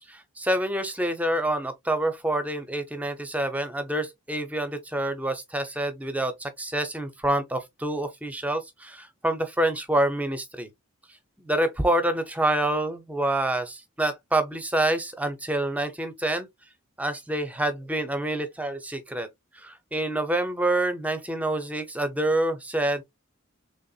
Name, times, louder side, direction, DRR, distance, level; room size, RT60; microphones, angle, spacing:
voice 1, 0.1-10.7 11.4-16.5 17.0-19.3 19.5-23.0, right 1 dB, 5° right, 0.6 m, -27 dB
4.0 x 3.3 x 2.3 m
head